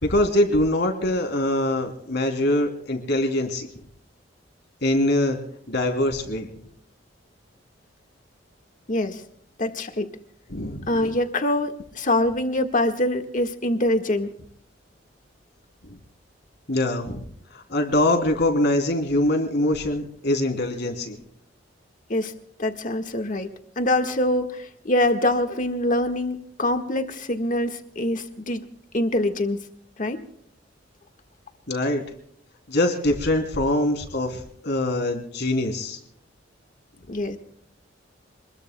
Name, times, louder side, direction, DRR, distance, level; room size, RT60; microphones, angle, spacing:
voice 1, 0.0-3.7 4.8-5.4 5.7-6.5 10.5-11.1 15.9-16.0 16.7-17.3 17.5-21.2 31.7-32.0 32.7-36.0, left 1 dB, 65° left, 4 dB, 3.2 m, -23 dB
voice 2, 8.9-9.2 9.6-10.1 10.9-14.3 22.1-22.3 22.6-28.6 28.9-29.6 30.0-30.2 37.1-37.4, left 1 dB, 45° left, 6 dB, 1.6 m, -24 dB
26.5 x 21.0 x 2.3 m, 0.65 s
head